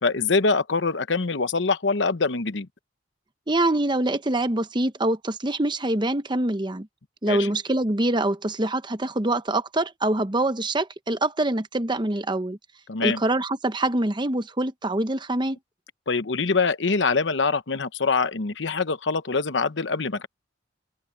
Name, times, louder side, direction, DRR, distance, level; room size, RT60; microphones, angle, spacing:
voice 1, 0.0-2.7 7.2-7.5 12.9-13.2 16.1-20.3, left 4 dB, 70° left, 1.0 m, -24 dB
voice 2, 3.5-6.9 7.2-12.6 13.0-15.6, right 1 dB, 25° right, 0.9 m, -25 dB
open air
head